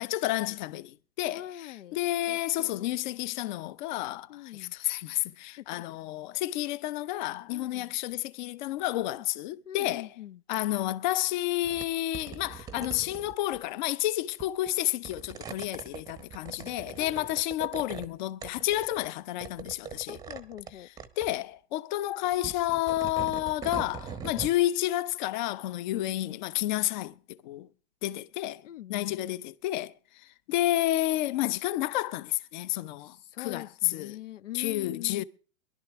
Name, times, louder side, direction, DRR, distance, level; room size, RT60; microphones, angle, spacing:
voice 1, 0.0-10.1 10.5-20.2 21.2-27.7 28.0-28.6 28.9-34.2 34.5-35.2, left 15 dB, 40° left, 0.6 m, -30 dB
voice 2, 1.3-2.0 2.3-3.0 4.3-4.7 5.6-5.8 7.5-7.9 9.1-9.3 9.7-10.4 17.0-18.0 20.1-20.9 28.6-29.2 33.0-35.2, left 13 dB, 90° left, 0.6 m, -44 dB
sound 1, 11.6-11.9 12.1-13.6 14.4-14.7 15.0-18.1 18.4-19.1 19.4-20.7 21.0-21.3 22.3-24.6, right 6 dB, 10° right, 0.7 m, -41 dB
23.0 x 11.5 x 3.5 m
hypercardioid pair, 145°, 36 cm